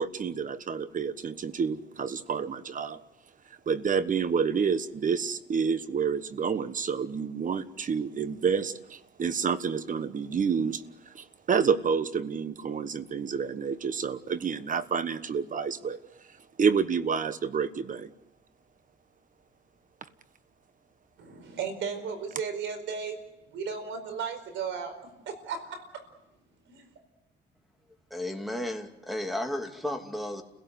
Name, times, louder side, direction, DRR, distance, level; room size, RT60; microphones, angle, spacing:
voice 1, 0.0-3.0 3.7-16.0 16.6-18.1, right 6 dB, 45° right, 13 dB, 1.3 m, -29 dB
voice 2, 21.2-23.2 23.5-25.0 25.3-26.0 26.7-26.8, right 6 dB, 80° right, 8 dB, 4.8 m, -35 dB
voice 3, 28.1-30.4, left 1 dB, ahead, 5 dB, 2.8 m, -33 dB
30.0 x 17.0 x 8.0 m, 0.90 s
cardioid pair, 100°, 19 cm